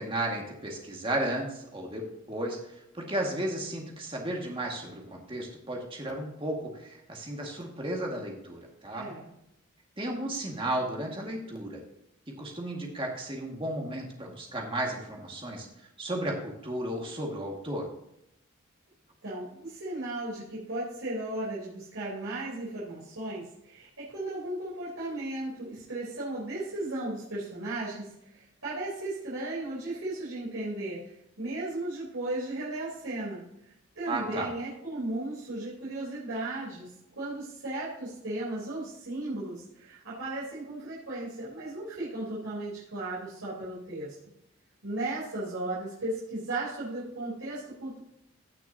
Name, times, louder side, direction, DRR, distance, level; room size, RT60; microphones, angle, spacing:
voice 1, 0.0-2.0 2.3-9.1 10.0-11.8 12.4-15.7 16.0-17.9 34.1-34.5, right 1 dB, 25° right, 0 dB, 2.0 m, -34 dB
voice 2, 8.9-9.3 19.2-44.1 44.8-48.0, right 2 dB, 85° right, -8 dB, 3.9 m, -36 dB
16.5 x 6.3 x 2.9 m, 0.82 s
head